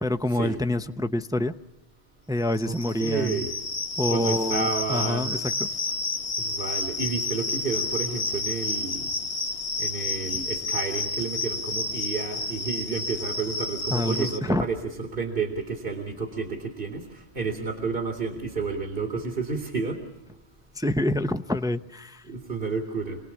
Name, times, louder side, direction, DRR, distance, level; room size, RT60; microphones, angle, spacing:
voice 1, 0.0-1.5 2.3-3.4 4.0-5.7 10.3-10.4 13.9-14.6 20.8-22.2, left 1 dB, 5° right, 9 dB, 0.5 m, -27 dB
sound 1, 2.5-14.4, left 3 dB, 75° left, 1.6 m, -30 dB
voice 2, 2.7-3.5 4.1-5.4 6.4-9.1 9.8-20.0 22.2-23.2, right 4 dB, 60° right, 3 dB, 2.6 m, -31 dB
27.5 x 19.5 x 7.0 m, 1.0 s
omnidirectional pair, 1.1 m